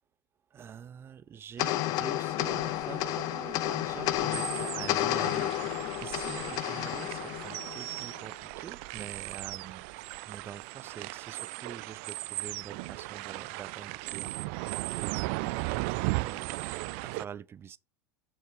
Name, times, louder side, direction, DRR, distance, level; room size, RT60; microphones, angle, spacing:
voice 1, 0.5-5.5 6.0-9.8 10.3-17.8, right 8 dB, 30° right, 0.7 m, -46 dB
sound 1, 1.6-8.2, left 14 dB, 50° left, 0.8 m, -31 dB
sound 2, 2.4-17.2, right 24 dB, 55° right, 0.4 m, -37 dB
7.1 x 6.5 x 4.7 m
hypercardioid pair, 85°, 8 cm